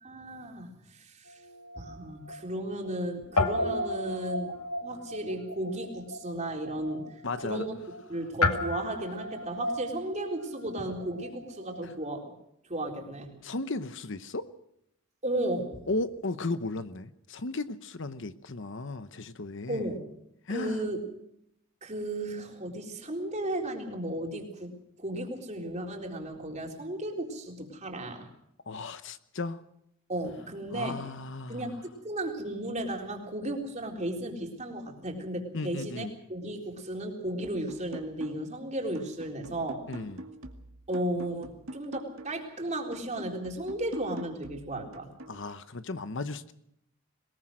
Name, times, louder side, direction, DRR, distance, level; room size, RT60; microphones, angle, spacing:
voice 1, 0.0-1.4 1.8-4.5 4.8-7.1 7.4-7.8 8.1-12.3 12.7-13.3 15.2-15.8 19.7-20.0 20.5-21.0 21.8-24.7 25.0-28.3 30.1-31.0 31.5-39.9 40.9-45.1, right 1 dB, 30° right, 2 dB, 3.8 m, -34 dB
Guitar, 1.3-3.0 3.3-12.0, left 2 dB, 85° left, 2.2 m, -34 dB
voice 2, 7.2-7.7 11.8-11.9 13.4-14.5 15.9-19.9 20.5-20.9 28.7-29.6 30.7-31.8 35.5-36.1 39.9-40.2 45.3-46.5, left 2 dB, 55° left, 12 dB, 1.0 m, -35 dB
sound 1, 37.4-38.6 39.0-42.5 42.9-45.4, right 1 dB, 65° right, 2.3 m, -45 dB
22.0 x 20.5 x 6.3 m, 0.77 s
head